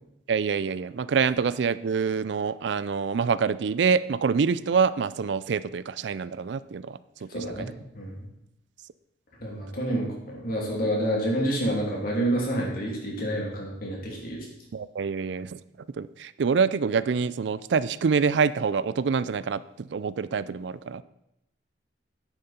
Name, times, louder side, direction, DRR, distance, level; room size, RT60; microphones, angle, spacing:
voice 1, 0.3-7.3 14.7-15.6 15.9-21.0, right 5 dB, 70° right, 17 dB, 0.4 m, -26 dB
voice 2, 7.3-8.3 9.4-14.5, right 1 dB, 55° left, -2 dB, 3.0 m, -28 dB
10.0 x 9.2 x 4.3 m, 0.82 s
head